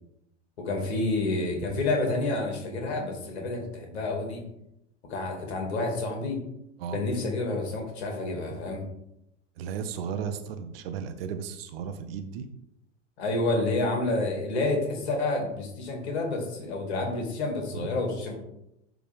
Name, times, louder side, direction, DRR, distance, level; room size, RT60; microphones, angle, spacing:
voice 1, 0.6-4.4 5.1-6.4 6.9-8.8 13.2-18.4, left 2 dB, 60° left, 2 dB, 2.4 m, -29 dB
voice 2, 9.6-12.5 17.8-18.0, right 7 dB, 50° right, 8 dB, 0.9 m, -35 dB
10.5 x 3.7 x 3.6 m, 0.82 s
figure-of-eight pair, 95°, 36 cm